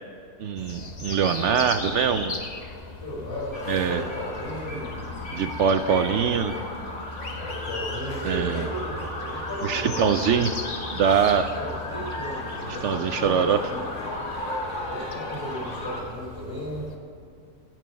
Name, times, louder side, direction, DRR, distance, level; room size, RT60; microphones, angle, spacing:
voice 1, 0.4-2.4 3.7-4.0 5.3-6.5 8.2-8.6 9.6-10.5 10.9-11.5 12.8-13.6, right 7 dB, 70° right, 9 dB, 0.7 m, -23 dB
sound 1, 0.6-17.0, left 3 dB, 35° left, 0.9 m, -37 dB
voice 2, 3.0-5.0 7.4-10.6 10.9-11.0 11.6-13.8 14.8-16.9, equal, 25° right, -3 dB, 3.8 m, -35 dB
sound 2, 3.5-16.0, left 1 dB, 50° left, 2.1 m, -35 dB
16.5 x 6.2 x 6.9 m, 2.5 s
omnidirectional pair, 1.6 m